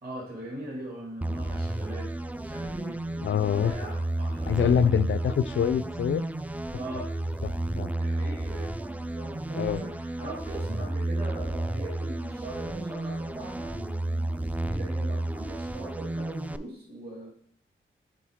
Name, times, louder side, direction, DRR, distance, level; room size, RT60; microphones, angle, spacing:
voice 1, 0.0-2.1 2.4-4.9 6.8-7.6 7.9-17.3, right 1 dB, 50° right, -3 dB, 2.3 m, -41 dB
sound 1, 1.2-16.6, right 1 dB, 5° right, 0.3 m, -32 dB
voice 2, 3.2-3.7 4.5-6.2 7.8-7.9 9.5-9.8, left 8 dB, 70° left, 14 dB, 0.4 m, -25 dB
7.5 x 4.0 x 3.6 m, 0.65 s
cardioid pair, 50°, 21 cm